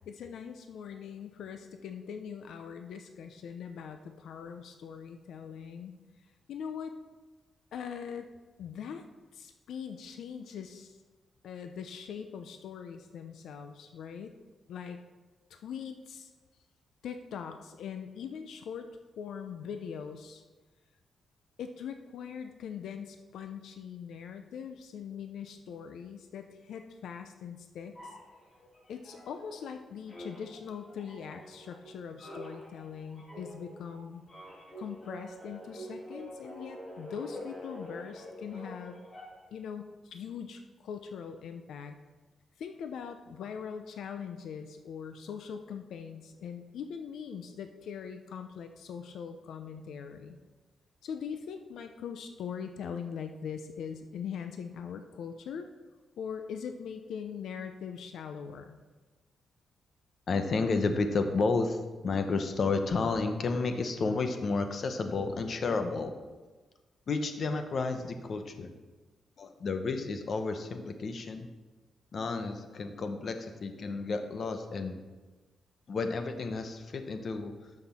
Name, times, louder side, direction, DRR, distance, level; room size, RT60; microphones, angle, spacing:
voice 1, 0.1-5.9 6.5-6.9 7.7-8.3 8.6-9.0 9.3-11.0 11.4-14.4 14.7-15.0 15.5-16.3 17.0-18.9 19.2-20.4 21.6-28.0 28.9-34.2 34.8-39.0 39.5-42.0 42.6-50.4 51.0-55.7 56.2-58.8, left 7 dB, 80° left, 7 dB, 0.6 m, -41 dB
sound 1, 27.9-29.8 30.1-39.6, equal, 30° left, 2.0 m, -46 dB
voice 2, 60.3-66.2 67.1-68.7 69.4-71.5 72.1-75.0 75.9-77.5, left 4 dB, 45° left, 7 dB, 0.8 m, -31 dB
13.0 x 5.9 x 4.3 m, 1.2 s
wide cardioid pair, 155°, 0 cm